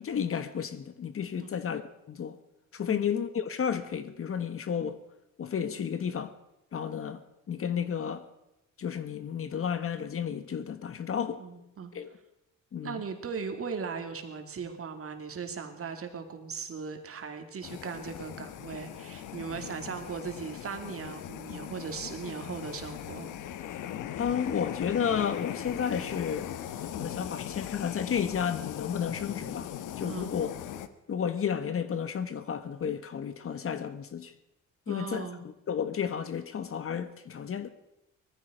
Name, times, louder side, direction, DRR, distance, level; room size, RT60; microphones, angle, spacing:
voice 1, 0.0-1.8 2.1-2.4 2.7-5.0 5.4-6.3 6.7-7.2 7.5-8.2 8.8-11.4 11.9-12.1 12.7-13.0 19.6-19.7 24.2-26.5 27.0-29.7 30.0-30.5 31.1-34.3 34.9-35.3 35.7-37.7, left 7 dB, 45° left, 1.3 m, -32 dB
voice 2, 11.4-11.9 12.8-23.3 30.0-30.3 34.9-35.4, right 5 dB, 50° right, 2.7 m, -38 dB
sound 1, 17.6-30.9, left 10 dB, 85° left, 1.1 m, -39 dB
19.0 x 14.5 x 5.2 m
cardioid pair, 90°, 30 cm